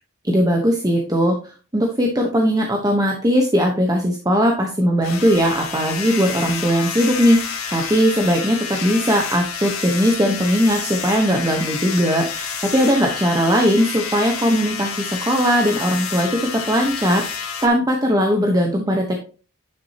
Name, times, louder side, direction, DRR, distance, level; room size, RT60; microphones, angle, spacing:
voice 1, 0.2-19.2, equal, 15° right, 2 dB, 1.0 m, -19 dB
sound 1, 5.0-17.7, left 6 dB, 80° left, 1.9 m, -29 dB
10.0 x 6.1 x 2.8 m, 0.36 s
head